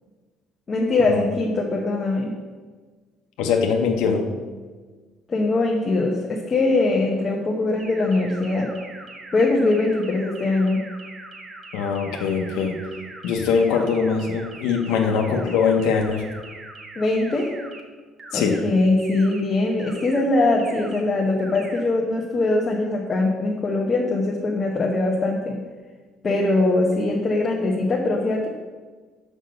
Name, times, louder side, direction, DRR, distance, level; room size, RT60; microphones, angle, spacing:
voice 1, 0.7-2.3 5.3-8.7 9.3-10.8 17.0-17.5 18.3-25.6 26.2-28.5, left 2 dB, 25° left, -1 dB, 0.9 m, -22 dB
voice 2, 3.4-4.3 11.7-12.7 13.2-16.2 18.3-18.6, left 5 dB, 90° left, 2 dB, 0.9 m, -22 dB
sound 1, 7.8-17.8 18.2-18.6 19.0-19.4 19.8-20.2 20.6-21.0 21.4-21.8, right 2 dB, 25° right, 1.0 m, -41 dB
6.0 x 5.4 x 6.5 m, 1.4 s
cardioid pair, 155°, 0 cm